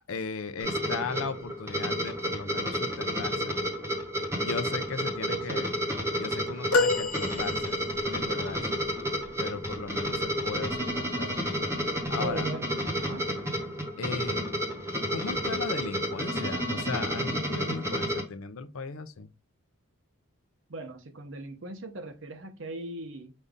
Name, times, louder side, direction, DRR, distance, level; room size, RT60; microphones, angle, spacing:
voice 1, 0.1-3.6 4.4-5.7 6.2-7.8 8.1-8.7 9.4-11.5 12.1-12.5 14.0-14.4 15.1-19.3, left 4 dB, 75° left, 0.6 m, -37 dB
sound 1, 0.6-18.2, equal, 10° right, 1.0 m, -31 dB
voice 2, 5.3-5.7 8.3-8.7 12.2-12.7 13.0-13.3 20.7-23.3, right 2 dB, 55° right, 0.8 m, -39 dB
sound 2, 6.7-8.1 10.5-10.7 12.0-12.1, left 3 dB, 90° left, 0.9 m, -27 dB
5.2 x 2.6 x 3.6 m
head